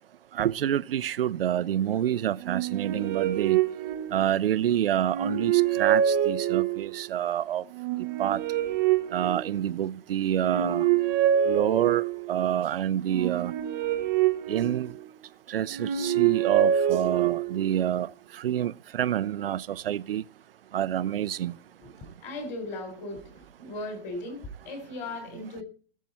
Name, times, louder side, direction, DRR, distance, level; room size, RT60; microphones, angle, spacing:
voice 1, 0.3-3.6 4.1-7.6 8.2-8.4 9.1-10.9 11.5-13.5 14.5-14.9 15.5-20.2 20.7-21.6, right 11 dB, 60° right, 0.6 m, -27 dB
sound 1, 2.4-4.5 5.0-7.0 7.7-9.9 10.3-12.4 13.1-15.2 15.7-17.7, right 10 dB, 15° right, 0.7 m, -26 dB
voice 2, 13.8-14.2 21.8-25.6, left 2 dB, 20° left, 4.0 m, -38 dB
18.5 x 7.5 x 4.3 m
hypercardioid pair, 165°, 32 cm